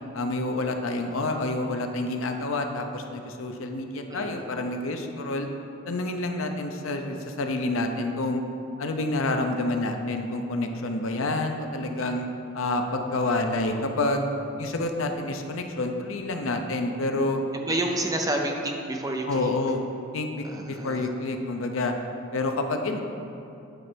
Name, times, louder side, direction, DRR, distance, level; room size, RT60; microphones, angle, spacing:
voice 1, 0.1-5.5 5.9-8.4 8.8-12.3 12.5-14.3 14.6-17.4 19.3-19.8 20.1-21.9 22.3-23.0, left 2 dB, 75° left, 5 dB, 0.6 m, -28 dB
voice 2, 4.1-4.4 12.0-12.2 17.5-19.5 20.5-21.1, right 1 dB, 15° right, 2 dB, 0.5 m, -29 dB
9.0 x 3.3 x 6.1 m, 2.7 s
head